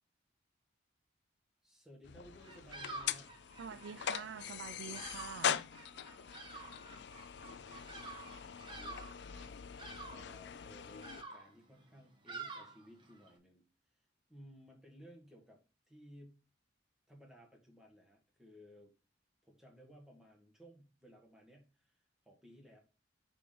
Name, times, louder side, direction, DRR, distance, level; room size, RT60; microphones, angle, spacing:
voice 1, 1.6-3.3 8.3-9.6 10.1-13.7 13.9-15.6 15.9-16.4 17.1-18.9 19.4-22.8, equal, 5° right, 1.6 m, -58 dB
sound 1, 2.0-11.2, left 8 dB, 60° left, 0.4 m, -42 dB
Bird vocalization bird call bird song, 2.4-13.4, right 3 dB, 25° right, 1.1 m, -50 dB
voice 2, 3.6-5.6, right 6 dB, 75° right, 0.4 m, -46 dB
6.7 x 3.8 x 5.1 m
head